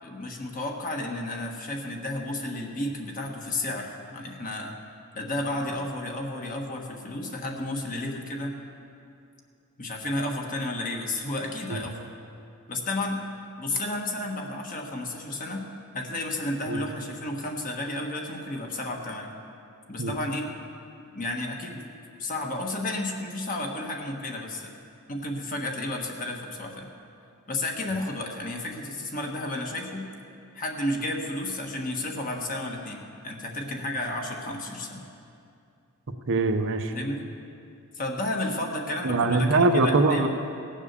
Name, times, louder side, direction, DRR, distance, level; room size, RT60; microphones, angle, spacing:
voice 1, 0.0-4.7 5.1-8.6 9.8-12.1 12.7-13.2 13.6-15.7 15.9-19.3 19.9-20.5 21.1-21.9 22.2-24.7 25.1-26.9 27.5-30.1 30.5-35.0 36.9-37.3 37.9-40.3, left 1 dB, 40° left, 1 dB, 1.4 m, -32 dB
voice 2, 36.3-36.9 39.0-40.3, right 3 dB, 60° right, 6 dB, 0.8 m, -22 dB
17.5 x 7.3 x 6.8 m, 2.5 s
head